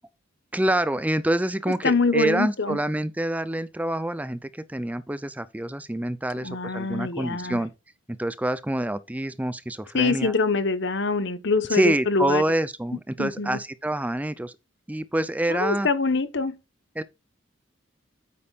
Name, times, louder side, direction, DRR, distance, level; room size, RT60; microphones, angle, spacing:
voice 1, 0.5-7.7 8.1-10.3 11.7-14.6 14.9-15.9 17.0-17.1, right 1 dB, 10° right, 0.4 m, -26 dB
voice 2, 1.8-2.8 6.4-7.6 9.9-12.4 13.2-13.6 15.5-16.6, left 4 dB, 60° left, 1.1 m, -24 dB
8.8 x 8.5 x 2.4 m
head